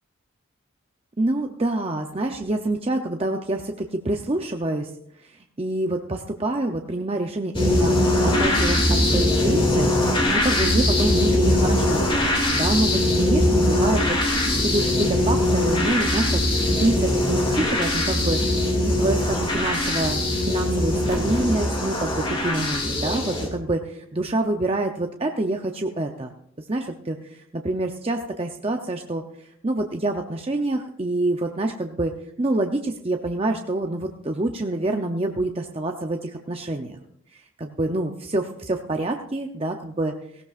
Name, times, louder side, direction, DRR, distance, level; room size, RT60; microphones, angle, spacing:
voice 1, 1.2-4.9 5.2-9.9 10.3-12.1 12.5-18.4 18.8-20.2 20.4-29.2 29.6-32.1 32.4-37.0 37.3-40.4, right 2 dB, 25° right, 3 dB, 0.6 m, -27 dB
sound 1, 7.5-23.5, left 1 dB, 25° left, 2.4 m, -21 dB
18.5 x 17.0 x 2.5 m, 0.73 s
head